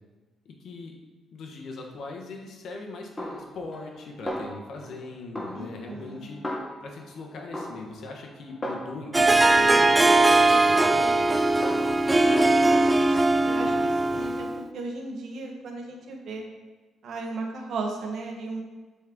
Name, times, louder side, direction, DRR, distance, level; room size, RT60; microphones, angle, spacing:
voice 1, 0.4-0.9 1.3-6.4 6.8-11.2, left 3 dB, 70° left, 2 dB, 1.2 m, -40 dB
Snare drum, 3.2-4.0 4.3-5.0 5.4-7.1 7.5-9.2 9.7-11.3 11.6-11.9, equal, 15° left, 1.3 m, -36 dB
voice 2, 5.5-6.3 12.1-16.4 17.0-18.6, right 3 dB, 65° right, 1 dB, 1.2 m, -36 dB
Harp, 9.1-14.6, right 2 dB, 15° right, 0.4 m, -20 dB
7.3 x 4.3 x 3.8 m, 1.3 s
cardioid pair, 90°, 0 cm